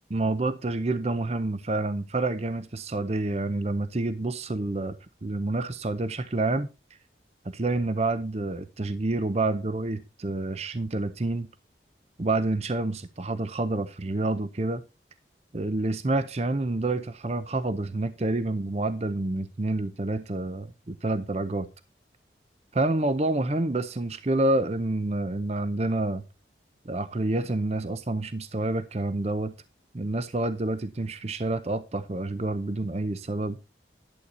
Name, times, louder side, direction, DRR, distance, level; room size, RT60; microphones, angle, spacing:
voice 1, 0.1-5.0 5.2-6.7 7.4-11.5 12.2-14.8 15.5-21.7 22.7-26.2 26.9-29.5 29.9-33.6, right 2 dB, 35° right, 0.6 m, -28 dB
11.5 x 8.2 x 4.1 m
head